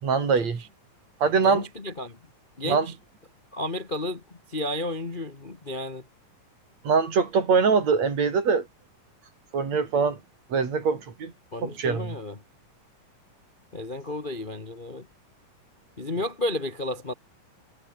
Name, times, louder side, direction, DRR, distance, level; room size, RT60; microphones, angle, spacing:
voice 1, 0.0-0.6 1.2-1.7 2.6-2.9 6.8-8.7 9.5-10.2 10.5-11.3 11.6-12.2, right 5 dB, 55° right, 4.7 m, -23 dB
voice 2, 1.4-2.2 2.6-2.9 3.5-4.2 4.5-6.0 11.5-12.4 13.7-15.1 16.0-17.1, left 1 dB, 85° left, 0.4 m, -32 dB
omnidirectional pair, 3.9 m